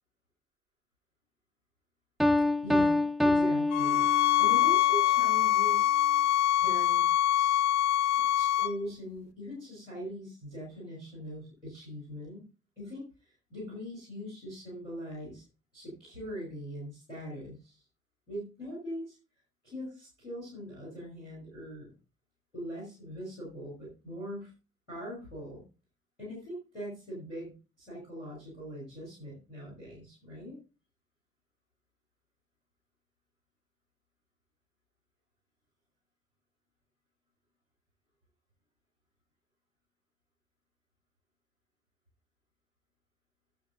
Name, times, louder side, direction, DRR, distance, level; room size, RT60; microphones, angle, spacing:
Piano, 2.2-4.7, left 2 dB, ahead, 0.6 m, -26 dB
voice 1, 2.6-4.1 4.4-6.0 6.6-7.0 7.3-7.6 8.4-12.5 12.8-15.4 15.7-17.8 18.3-19.2 19.6-21.9 22.5-24.5 24.9-25.6 26.2-27.5 27.8-30.6, equal, 90° left, -4 dB, 2.8 m, -41 dB
sound 1, 3.7-8.7, left 13 dB, 60° left, 0.7 m, -24 dB
17.5 x 6.8 x 2.5 m, 0.33 s
figure-of-eight pair, 40°, 35 cm